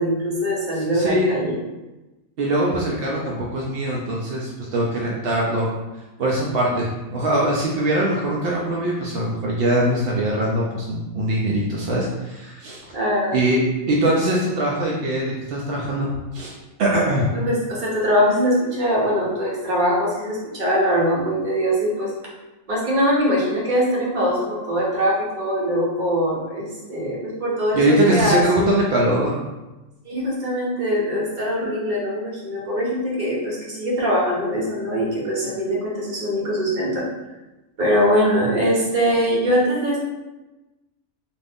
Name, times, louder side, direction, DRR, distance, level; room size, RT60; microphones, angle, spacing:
voice 1, 0.0-1.6 12.9-13.3 17.3-22.1 22.7-28.7 30.0-37.1 37.8-40.0, equal, 40° right, -5 dB, 0.8 m, -22 dB
voice 2, 0.9-1.3 2.4-5.7 6.2-12.8 13.3-13.6 13.9-16.5 16.8-17.3 27.7-29.4, right 1 dB, 70° right, -4 dB, 0.5 m, -22 dB
2.5 x 2.5 x 3.4 m, 1.1 s
omnidirectional pair, 1.5 m